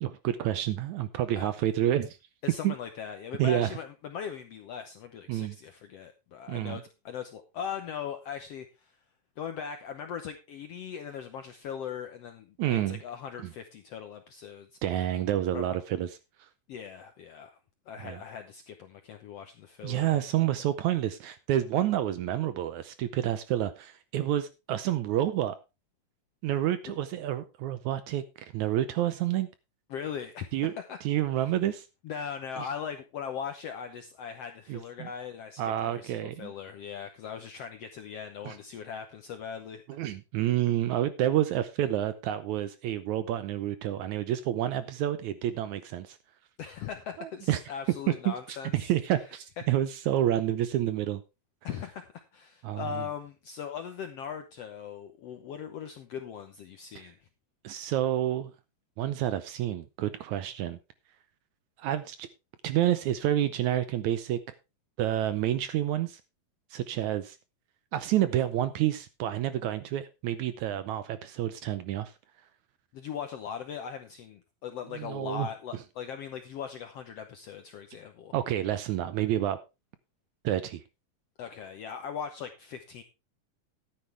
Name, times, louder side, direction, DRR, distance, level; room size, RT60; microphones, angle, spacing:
voice 1, 0.0-2.2 2.6-2.7 3.4-3.7 5.3-5.6 6.5-6.8 12.6-13.0 14.8-16.1 18.0-18.2 19.8-25.6 26.4-29.5 30.5-30.7 31.0-31.9 32.6-32.7 34.7-35.1 35.6-36.5 38.4-38.6 39.9-46.2 47.2-47.6 48.3-51.2 52.6-53.0 57.0-57.1 57.6-58.5 59.0-60.8 61.8-62.3 62.6-64.4 65.0-66.2 66.7-67.4 67.9-72.1 74.9-75.5 78.3-79.6 80.4-80.8, right 12 dB, 75° right, 1.9 m, -29 dB
voice 2, 2.4-9.0 9.4-14.7 15.5-15.6 16.7-17.6 17.9-20.2 29.9-31.0 31.4-31.5 32.0-39.8 46.6-48.9 49.6-49.7 51.6-57.2 72.9-78.3 81.4-83.0, left 7 dB, 75° left, 1.5 m, -39 dB
13.0 x 10.0 x 3.3 m
omnidirectional pair, 3.9 m